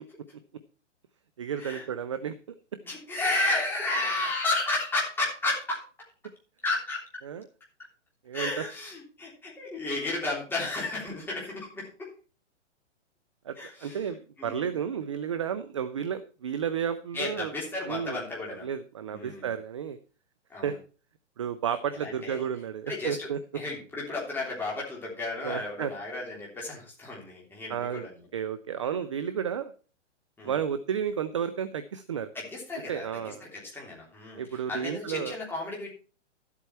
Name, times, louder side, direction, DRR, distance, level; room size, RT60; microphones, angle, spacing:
voice 1, 1.4-2.3 7.2-7.4 8.3-8.6 13.4-17.5 17.9-18.2 18.6-20.0 20.6-20.8 21.4-23.4 25.4-25.9 27.7-28.1 28.3-29.7 30.4-32.3 32.9-33.5 34.4-35.4, right 8 dB, 25° right, 11 dB, 0.4 m, -32 dB
voice 2, 2.8-5.8 6.6-7.0 8.3-12.1 13.5-14.0 14.4-14.7 17.1-18.7 19.1-19.5 20.5-20.8 21.9-22.4 22.9-23.3 23.5-28.2 30.4-30.5 32.3-35.9, left 2 dB, 5° left, -4 dB, 3.3 m, -33 dB
12.0 x 8.2 x 4.3 m, 0.37 s
hypercardioid pair, 160°, 37 cm